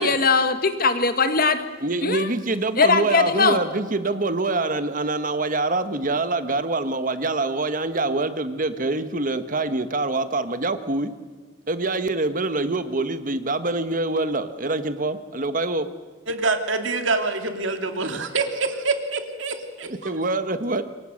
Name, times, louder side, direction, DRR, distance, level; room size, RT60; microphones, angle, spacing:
voice 1, 0.0-1.6 2.0-2.3 2.8-3.6, left 4 dB, 50° left, 9 dB, 1.8 m, -20 dB
voice 2, 1.8-11.1 11.7-15.9 19.9-20.8, right 2 dB, 45° right, 11 dB, 1.4 m, -25 dB
voice 3, 16.3-20.1, right 3 dB, 80° right, 7 dB, 2.6 m, -26 dB
27.0 x 23.5 x 6.6 m, 1.4 s
head